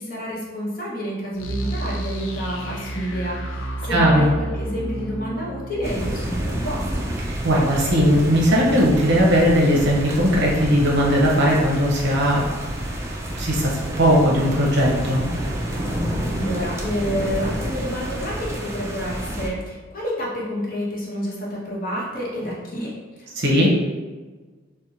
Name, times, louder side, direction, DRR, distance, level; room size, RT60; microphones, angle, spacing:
voice 1, 0.0-7.0 16.4-23.3, equal, 45° left, -4 dB, 0.8 m, -29 dB
sound 1, 1.3-8.2, right 1 dB, 70° left, 0.5 m, -32 dB
voice 2, 3.9-4.3 7.3-12.4 13.3-15.2 23.4-23.7, equal, 55° right, -3 dB, 0.8 m, -18 dB
sound 2, 5.8-19.5, right 1 dB, 15° right, 0.3 m, -29 dB
4.4 x 2.2 x 2.7 m, 1.3 s
head